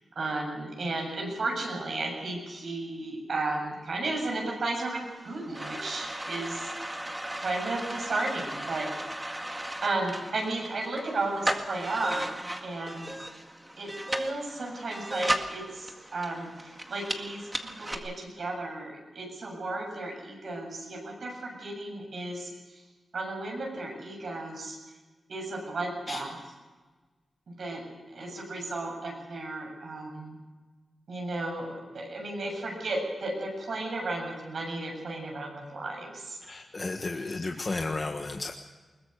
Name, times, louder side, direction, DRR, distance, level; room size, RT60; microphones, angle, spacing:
voice 1, 0.2-6.7 7.4-8.9 9.4-12.3 12.6-13.3 13.8-13.9 14.2-22.8 23.1-24.8 25.3-26.4 27.5-27.8 28.1-30.4 31.1-36.4 37.1-37.3, right 2 dB, 65° right, 1 dB, 7.7 m, -34 dB
sound 1, 5.0-17.9, right 1 dB, 15° right, 1.9 m, -36 dB
voice 2, 36.4-38.5, left 3 dB, 35° left, 3 dB, 1.5 m, -33 dB
21.5 x 20.0 x 6.7 m, 1.3 s
wide cardioid pair, 105°, 0 cm